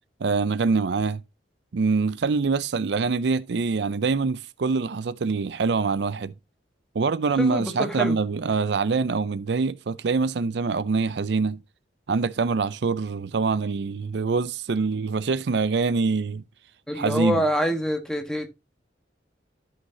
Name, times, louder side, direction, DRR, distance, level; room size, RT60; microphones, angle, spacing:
voice 1, 0.2-1.2 1.7-6.3 6.9-11.6 12.1-16.4 16.9-17.5, right 4 dB, 65° right, 0.4 m, -24 dB
voice 2, 7.4-8.2 16.9-18.5, equal, 5° left, 1.4 m, -26 dB
12.5 x 5.7 x 2.8 m
head